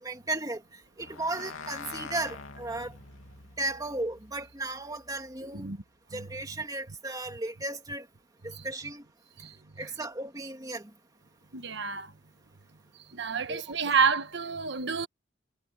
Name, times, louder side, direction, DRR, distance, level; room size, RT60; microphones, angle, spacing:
voice 1, 0.0-0.6 1.0-2.9 3.6-5.7 6.1-8.1 8.6-9.0 9.8-10.8 13.5-13.6, right 2 dB, 20° right, 2.1 m, -35 dB
sound 1, 1.0-5.7, left 4 dB, 85° left, 2.9 m, -46 dB
voice 2, 11.5-12.1 13.1-15.1, right 6 dB, 60° right, 1.4 m, -29 dB
head